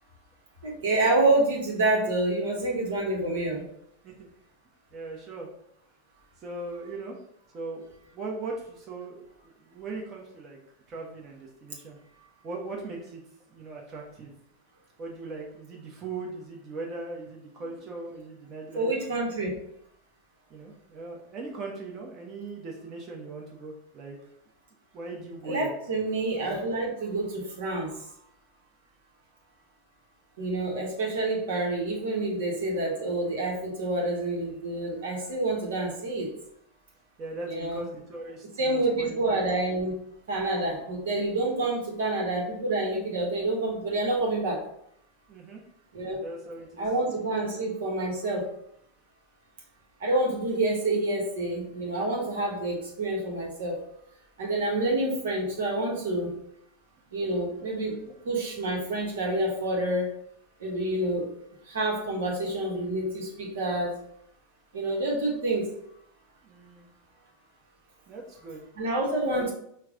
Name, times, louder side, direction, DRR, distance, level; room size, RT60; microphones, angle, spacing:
voice 1, 0.6-3.6 18.8-19.5 25.4-27.9 30.4-36.3 37.5-37.8 38.6-39.9 40.3-44.6 45.9-46.2 46.8-48.4 50.0-53.8 54.4-56.3 57.1-57.9 58.2-60.1 60.6-61.3 61.7-64.0 64.7-65.7 68.8-69.5, right 2 dB, 70° right, -1 dB, 1.0 m, -28 dB
voice 2, 4.9-5.5 6.4-7.2 7.5-10.6 10.9-12.0 12.4-13.2 13.5-14.3 15.0-18.9 20.5-24.2 24.9-25.7 37.2-39.2 40.8-40.9 45.3-45.6 46.0-46.9 57.6-57.7 66.4-66.9 68.1-68.7 69.3-69.4, right 3 dB, 35° right, -1 dB, 0.9 m, -39 dB
4.5 x 2.2 x 3.7 m, 0.73 s
hypercardioid pair, 90°, 0 cm